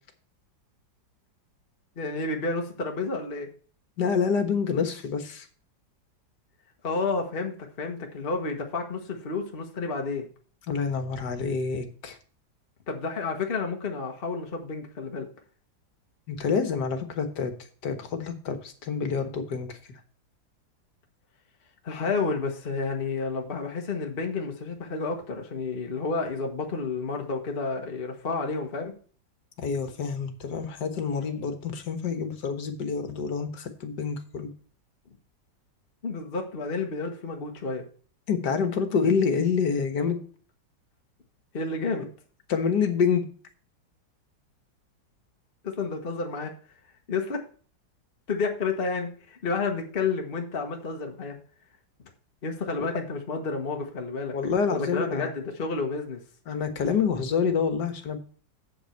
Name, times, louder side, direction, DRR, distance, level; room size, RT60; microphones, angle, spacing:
voice 1, 2.0-3.5 6.8-10.3 12.9-15.3 21.8-28.9 36.0-37.8 41.5-42.1 45.6-46.5 47.1-47.4 48.3-51.4 52.4-54.4 54.7-56.2, left 4 dB, 35° left, 3 dB, 1.4 m, -30 dB
voice 2, 4.0-5.5 10.7-12.2 16.3-17.5 17.8-19.8 29.6-34.5 38.3-40.2 42.0-42.1 42.5-43.2 54.3-55.3 56.5-58.2, left 6 dB, 65° left, 7 dB, 1.8 m, -27 dB
7.9 x 7.9 x 4.5 m, 0.42 s
omnidirectional pair, 2.0 m